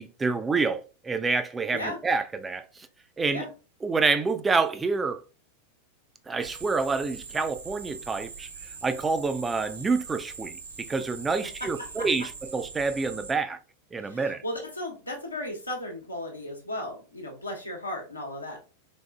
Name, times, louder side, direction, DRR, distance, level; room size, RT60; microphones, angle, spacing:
voice 1, 0.0-2.9 3.2-3.4 3.8-5.2 6.3-8.5 8.8-13.6 13.9-14.4, right 4 dB, 15° right, 0.3 m, -27 dB
sound 1, 6.4-13.3, right 5 dB, 70° right, 1.0 m, -42 dB
voice 2, 14.0-18.6, left 1 dB, 85° left, 1.0 m, -35 dB
3.6 x 3.4 x 2.3 m
figure-of-eight pair, 90°, 0 cm